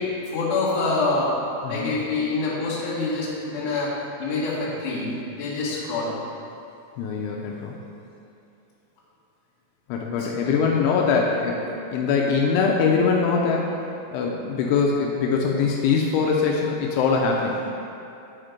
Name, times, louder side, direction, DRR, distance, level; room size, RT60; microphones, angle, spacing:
voice 1, 0.3-1.4 1.7-3.9 4.2-6.1 10.4-10.6, left 3 dB, 55° left, -9 dB, 2.7 m, -26 dB
voice 2, 1.6-2.0 7.0-7.8 9.9-17.6, left 5 dB, 85° left, -1 dB, 3.0 m, -23 dB
9.0 x 4.4 x 5.0 m, 2.7 s
omnidirectional pair, 5.4 m